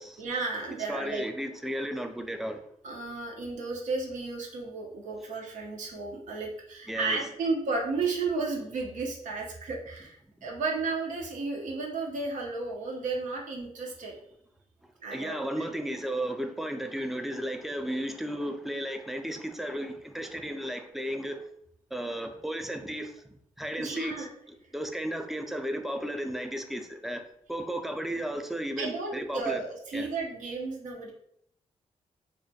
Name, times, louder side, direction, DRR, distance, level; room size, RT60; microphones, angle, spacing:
voice 1, 0.2-1.2 2.8-14.2 15.0-15.6 23.8-24.3 28.8-31.1, right 3 dB, 80° right, 0 dB, 0.6 m, -33 dB
voice 2, 0.9-2.7 6.9-7.2 15.1-21.5 21.9-23.2 23.6-29.6 29.9-30.1, equal, ahead, 6 dB, 0.3 m, -34 dB
2.3 x 2.1 x 2.6 m, 0.70 s
cardioid pair, 65°, 13 cm